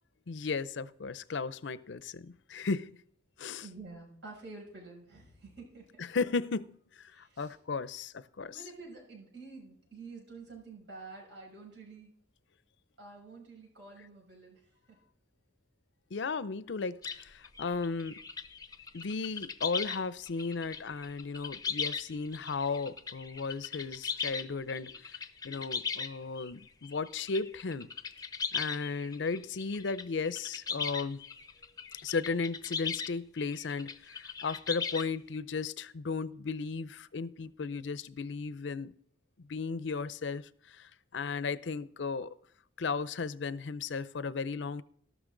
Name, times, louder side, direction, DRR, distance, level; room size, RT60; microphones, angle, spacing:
voice 1, 0.3-3.0 3.4-3.7 6.0-8.6 16.1-18.2 18.9-25.2 25.4-27.9 28.5-31.2 32.0-38.9 39.5-42.3 42.8-44.8, left 4 dB, 75° left, 0.6 m, -35 dB
voice 2, 3.6-6.0 7.1-7.6 8.4-12.1 13.0-14.6 14.9-15.0, right 3 dB, 70° right, 6.3 m, -49 dB
sound 1, 17.0-20.0 20.3-33.1 33.4-35.4, left 6 dB, 20° left, 0.6 m, -38 dB
13.5 x 12.5 x 3.9 m
head